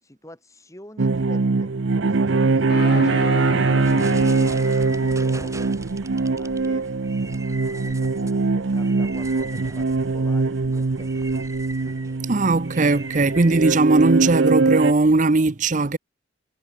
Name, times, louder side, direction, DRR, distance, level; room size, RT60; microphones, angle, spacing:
voice 1, 0.0-5.6 6.4-6.9 7.3-11.4, left 1 dB, 15° left, 7.7 m, -45 dB
sound 1, 1.0-14.9, right 3 dB, 75° right, 0.7 m, -22 dB
sound 2, 2.7-5.7, left 2 dB, 55° left, 2.3 m, -33 dB
sound 3, 3.7-14.3, right 2 dB, 15° right, 4.3 m, -41 dB
voice 2, 12.2-16.0, right 3 dB, 40° right, 0.7 m, -19 dB
head